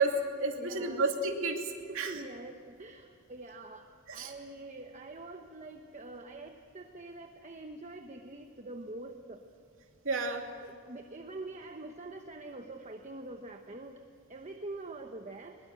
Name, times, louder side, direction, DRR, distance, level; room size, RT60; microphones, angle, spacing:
voice 1, 0.0-1.6 1.9-2.2 4.1-4.3 10.0-10.4, right 3 dB, 60° right, 3 dB, 2.8 m, -30 dB
voice 2, 0.5-1.1 1.9-3.9 4.1-9.4 10.6-14.0 14.3-15.6, right 2 dB, 30° right, 4 dB, 1.1 m, -45 dB
22.0 x 21.5 x 7.8 m, 2.4 s
head